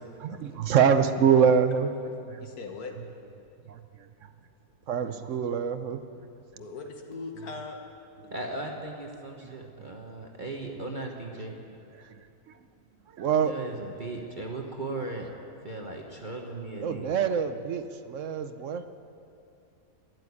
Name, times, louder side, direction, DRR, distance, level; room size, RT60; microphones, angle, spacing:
voice 1, 0.2-1.9 2.3-2.4 3.7-3.8 4.9-6.0 12.1-12.2 13.2-13.6 16.8-18.9, right 7 dB, 60° right, 10 dB, 0.9 m, -25 dB
voice 2, 2.4-2.9 6.6-7.8, left 4 dB, 80° left, 4 dB, 1.9 m, -39 dB
voice 3, 8.3-11.5 13.4-15.3 15.6-17.1, right 2 dB, 35° right, 0 dB, 1.2 m, -37 dB
12.5 x 11.0 x 9.6 m, 2.6 s
omnidirectional pair, 1.6 m